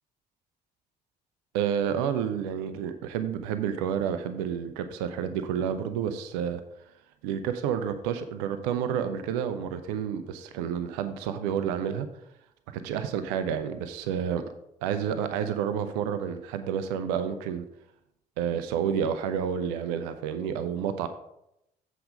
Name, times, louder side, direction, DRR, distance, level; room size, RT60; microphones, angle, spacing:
voice 1, 1.5-6.6 7.2-12.1 12.7-14.4 14.8-17.7 18.4-21.1, right 8 dB, 70° right, 10 dB, 0.6 m, -30 dB
7.9 x 5.0 x 5.0 m, 0.82 s
figure-of-eight pair, 45°, 21 cm